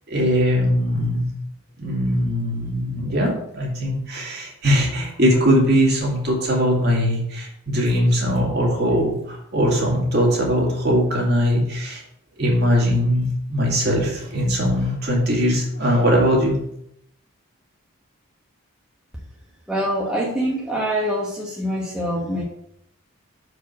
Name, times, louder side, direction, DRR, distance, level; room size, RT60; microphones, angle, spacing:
voice 1, 0.1-1.3 1.8-12.0 12.4-16.6, equal, 50° right, -1 dB, 2.1 m, -20 dB
voice 2, 19.7-22.4, equal, 5° right, -4 dB, 1.2 m, -24 dB
6.7 x 4.9 x 5.9 m, 0.74 s
head